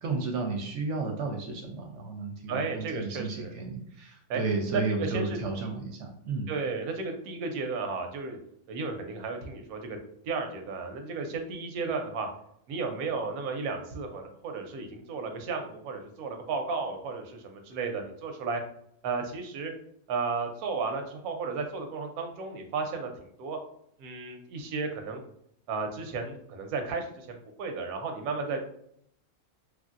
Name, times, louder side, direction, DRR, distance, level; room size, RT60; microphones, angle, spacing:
voice 1, 0.0-6.5, right 3 dB, 65° right, 3 dB, 0.8 m, -33 dB
voice 2, 2.5-3.5 4.3-4.4 4.7-5.4 6.5-8.4 8.7-10.0 10.3-12.3 12.7-18.6 19.0-19.7 20.1-23.1 23.4-23.6 24.0-25.2 25.7-28.6, right 4 dB, 85° right, 5 dB, 1.1 m, -33 dB
3.1 x 2.5 x 2.4 m, 0.69 s
omnidirectional pair, 1.5 m